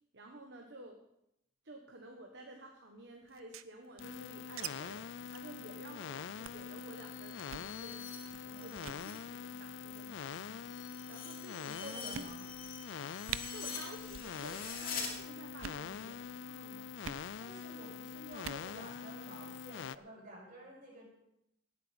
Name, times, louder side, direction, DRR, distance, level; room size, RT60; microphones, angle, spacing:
voice 1, 0.1-1.0 1.6-10.6 11.1-11.9 13.3-16.9, right 1 dB, 55° right, 2 dB, 1.3 m, -52 dB
sound 1, 3.3-4.7 4.9-5.0 5.3-5.5 5.8-6.0 6.4-6.7 7.4-7.7 8.3-8.5 8.8-9.0 9.9-10.3 11.0-11.1 11.6-11.7 12.1-12.7 12.9-13.0 13.3-13.4 14.1-14.3 14.6-15.0 15.5-15.9 17.0-17.2 18.3-18.7, right 9 dB, 85° right, 0.6 m, -44 dB
sound 2, 4.0-20.0, left 6 dB, 65° left, 0.4 m, -44 dB
sound 3, 6.8-9.2 9.6-15.1, left 6 dB, 45° left, 2.6 m, -46 dB
voice 2, 8.5-9.1 11.5-12.5 15.8-16.1 17.4-21.1, right 1 dB, 40° right, -3 dB, 6.1 m, -51 dB
18.5 x 8.3 x 5.1 m, 0.82 s
head